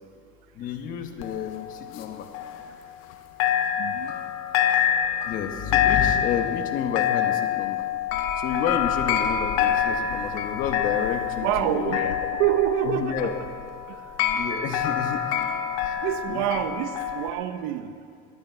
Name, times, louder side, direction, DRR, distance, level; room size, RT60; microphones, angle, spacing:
voice 1, 0.5-2.3 5.2-7.8 8.4-12.2 12.8-13.4 14.3-15.3 15.8-15.9 16.3-16.5, left 7 dB, 55° left, 7 dB, 1.2 m, -30 dB
sound 1, 1.2-3.1 3.4-17.3, left 9 dB, 85° left, 1.0 m, -26 dB
voice 2, 3.8-4.1 11.4-13.3 16.0-17.9, right 12 dB, 75° right, 11 dB, 0.8 m, -26 dB
21.0 x 8.8 x 4.6 m, 2.2 s
supercardioid pair, 115°, 17 cm